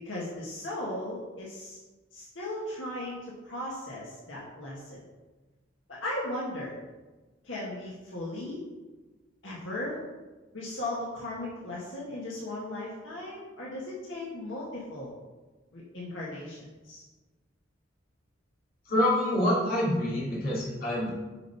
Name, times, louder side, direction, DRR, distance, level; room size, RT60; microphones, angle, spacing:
voice 1, 0.0-1.8 2.1-5.0 5.9-6.7 7.4-8.6 9.4-10.0 10.5-15.1 15.7-17.0, left 1 dB, 75° left, -5 dB, 1.8 m, -37 dB
voice 2, 18.9-21.1, left 1 dB, 50° left, -7 dB, 3.1 m, -26 dB
7.6 x 5.2 x 5.7 m, 1.2 s
head